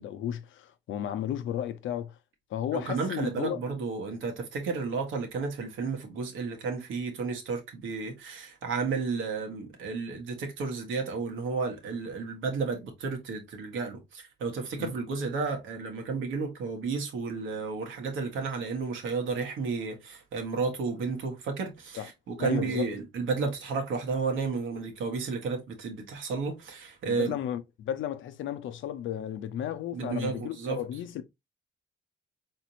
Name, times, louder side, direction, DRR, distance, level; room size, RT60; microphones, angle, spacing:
voice 1, 0.0-2.2 2.5-3.6 14.8-14.9 22.0-22.1 22.4-22.9 27.0-31.2, left 10 dB, 75° left, 0.7 m, -34 dB
voice 2, 2.7-27.3 29.9-30.8, right 4 dB, 80° right, 1.5 m, -32 dB
4.3 x 3.6 x 2.8 m
cardioid pair, 90°, 20 cm